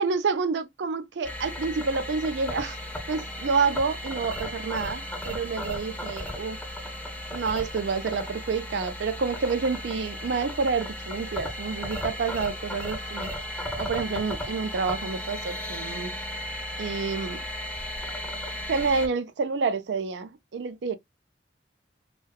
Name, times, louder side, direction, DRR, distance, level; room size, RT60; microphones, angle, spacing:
voice 1, 0.0-2.8 3.1-6.6 7.3-13.3 13.8-16.1 16.8-17.4 18.7-21.0, right 4 dB, 75° right, 0.4 m, -28 dB
sound 1, 1.2-19.1, equal, 10° left, 0.6 m, -35 dB
2.7 x 2.2 x 2.2 m
head